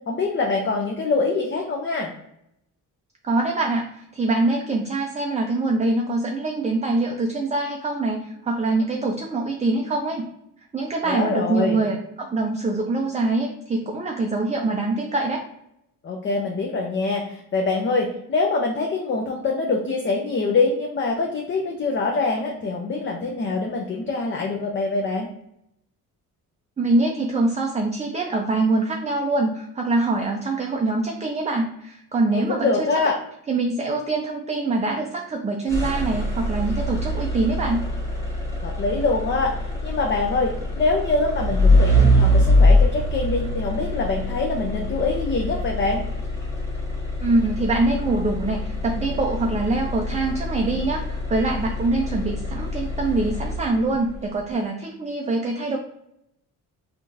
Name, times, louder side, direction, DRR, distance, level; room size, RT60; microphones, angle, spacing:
voice 1, 0.1-2.1 11.0-11.8 16.0-25.3 32.3-33.2 38.6-46.0, left 3 dB, 35° left, 0 dB, 0.6 m, -24 dB
voice 2, 3.2-10.2 10.7-15.5 26.8-32.9 33.5-37.8 47.2-55.8, right 2 dB, 20° right, 1 dB, 0.4 m, -24 dB
sound 1, 35.7-54.0, left 1 dB, 10° left, 1.3 m, -23 dB
3.6 x 2.4 x 2.7 m, 0.78 s
cardioid pair, 75°, 35 cm